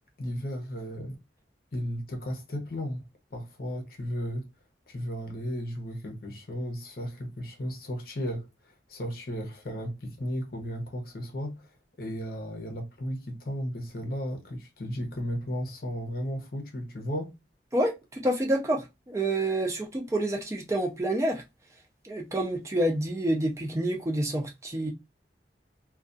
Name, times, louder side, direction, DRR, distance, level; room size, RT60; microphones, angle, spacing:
voice 1, 0.2-1.2 1.7-3.0 3.3-4.5 4.9-11.7 12.0-17.3, equal, 55° left, 0.7 m, -34 dB
voice 2, 17.7-21.4 22.0-24.9, right 1 dB, 15° right, 0.4 m, -28 dB
2.3 x 2.2 x 2.4 m
head